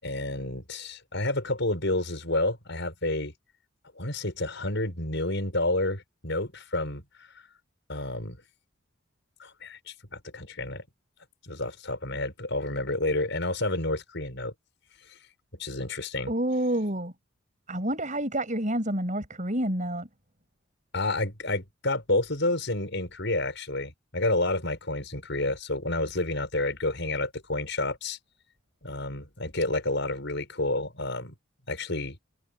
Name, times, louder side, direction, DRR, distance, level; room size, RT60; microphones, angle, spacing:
voice 1, 0.0-3.3 4.0-7.0 7.9-8.4 9.4-10.8 11.4-14.5 15.6-16.3 20.9-28.2 28.8-31.3 31.7-32.2, left 2 dB, 60° left, 7.7 m, -29 dB
voice 2, 16.3-17.1 17.7-20.1, right 1 dB, 40° right, 7.3 m, -28 dB
head